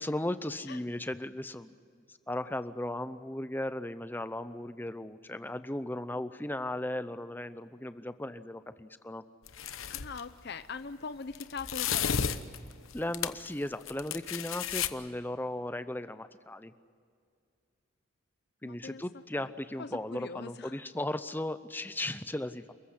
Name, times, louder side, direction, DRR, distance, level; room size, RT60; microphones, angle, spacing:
voice 1, 0.0-1.8 2.1-9.2 12.9-16.7 18.6-22.7, left 1 dB, 10° left, 12 dB, 0.6 m, -36 dB
sound 1, 9.5-10.2 11.3-13.5 13.8-14.9, left 7 dB, 75° left, 1.0 m, -33 dB
voice 2, 9.9-12.4 18.6-19.0 19.3-19.5 19.8-20.7, left 4 dB, 50° left, 11 dB, 0.7 m, -42 dB
29.0 x 15.0 x 9.7 m, 2.3 s
head